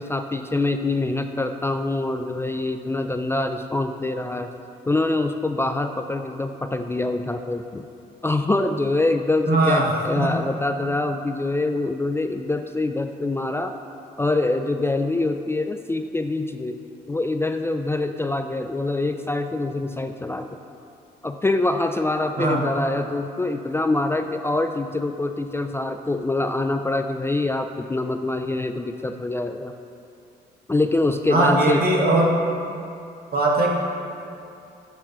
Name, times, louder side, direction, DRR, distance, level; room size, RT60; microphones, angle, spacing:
voice 1, 0.0-4.5 4.9-7.9 8.2-13.7 14.2-16.8 17.1-20.6 21.2-29.7 30.7-31.8, left 2 dB, 15° left, 7 dB, 0.4 m, -25 dB
voice 2, 9.5-9.9 10.1-10.3 22.4-22.6 31.3-32.4 33.3-33.7, right 2 dB, 60° right, -2 dB, 1.7 m, -19 dB
11.5 x 6.7 x 3.0 m, 2.6 s
supercardioid pair, 65°, 18 cm